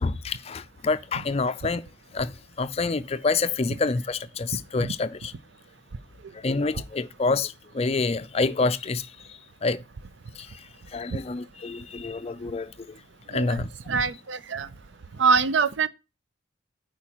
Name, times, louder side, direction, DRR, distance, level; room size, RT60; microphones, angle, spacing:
voice 1, 0.0-1.8 2.1-2.3 2.6-5.3 6.4-9.0 9.6-9.8 10.9-12.7 13.3-13.7, left 3 dB, 30° left, 0.4 m, -27 dB
voice 2, 13.9-14.7 15.2-15.9, right 5 dB, 60° right, 0.5 m, -23 dB
12.5 x 4.9 x 2.9 m
head